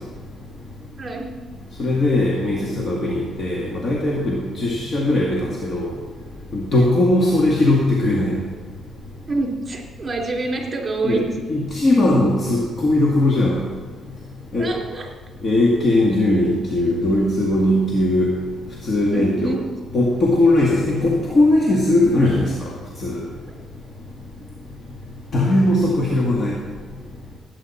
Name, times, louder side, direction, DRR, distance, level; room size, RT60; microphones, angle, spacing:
voice 1, 1.0-1.3 4.6-4.8 6.7-6.9 9.3-11.3 14.6-15.1 19.1-19.6 21.0-21.1 22.3-22.4, right 3 dB, 30° right, 0 dB, 3.2 m, -27 dB
voice 2, 1.8-5.9 6.5-8.3 11.0-11.2 11.5-13.6 14.5-14.7 15.4-18.3 18.8-19.6 19.9-22.5 23.0-23.2 25.3-26.6, left 1 dB, 45° left, -2 dB, 1.9 m, -19 dB
16.5 x 8.8 x 4.3 m, 1.5 s
cardioid pair, 90°, 0 cm